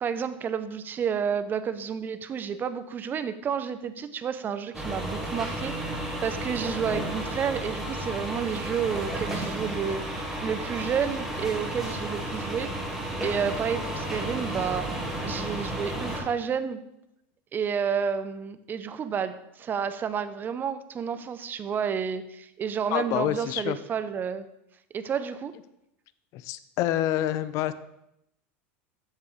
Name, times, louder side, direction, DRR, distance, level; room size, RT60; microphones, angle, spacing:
voice 1, 0.0-12.7 13.2-14.9 15.2-16.8 17.5-24.5 24.9-25.5, right 7 dB, 30° right, 12 dB, 0.6 m, -30 dB
sound 1, 4.7-16.2, right 1 dB, 5° right, 1.7 m, -32 dB
voice 2, 22.9-23.8 26.3-27.7, left 13 dB, 50° left, 14 dB, 0.5 m, -27 dB
8.2 x 7.5 x 3.2 m, 0.82 s
supercardioid pair, 115°, 7 cm